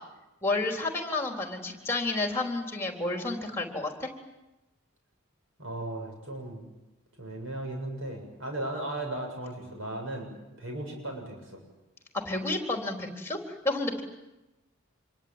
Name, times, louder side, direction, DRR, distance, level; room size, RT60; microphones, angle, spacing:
voice 1, 0.4-4.1 12.2-14.0, left 2 dB, 10° left, 3 dB, 4.0 m, -31 dB
voice 2, 5.6-6.6 7.2-10.3 10.6-11.6, right 1 dB, 70° right, 2 dB, 7.5 m, -36 dB
26.5 x 23.0 x 9.1 m, 1.0 s
head